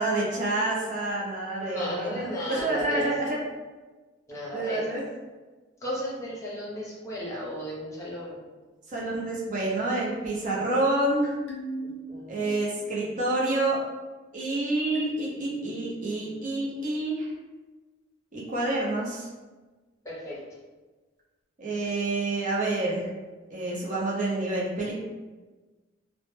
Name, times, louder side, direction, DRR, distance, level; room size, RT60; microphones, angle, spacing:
voice 1, 0.0-3.4 4.5-5.0 8.9-11.3 12.3-13.8 14.3-17.3 18.3-19.3 21.6-23.1 23.5-24.9, right 2 dB, 40° right, -5 dB, 0.5 m, -28 dB
voice 2, 1.6-3.1 4.3-4.8 5.8-8.4 11.8-12.6 20.0-20.4, equal, 15° left, -6 dB, 0.6 m, -34 dB
sound 1, 11.5-12.7 13.0-13.4 14.9-16.8, right 1 dB, 65° left, 0.4 m, -39 dB
2.0 x 2.0 x 3.0 m, 1.3 s
head